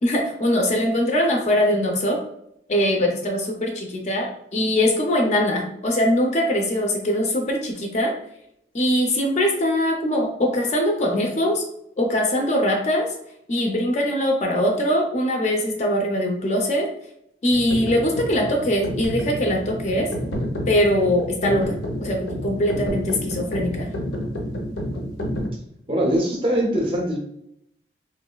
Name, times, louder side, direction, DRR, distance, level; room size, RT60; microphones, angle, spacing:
voice 1, 0.0-2.2 2.7-8.2 8.7-11.6 12.0-13.1 13.5-16.9 17.4-20.1 20.7-23.9, equal, 40° left, 2 dB, 0.4 m, -22 dB
sound 1, 17.5-25.5, equal, 80° left, 0.6 m, -29 dB
voice 2, 25.9-27.2, equal, 30° right, 0 dB, 0.5 m, -22 dB
3.0 x 2.5 x 2.2 m, 0.76 s
head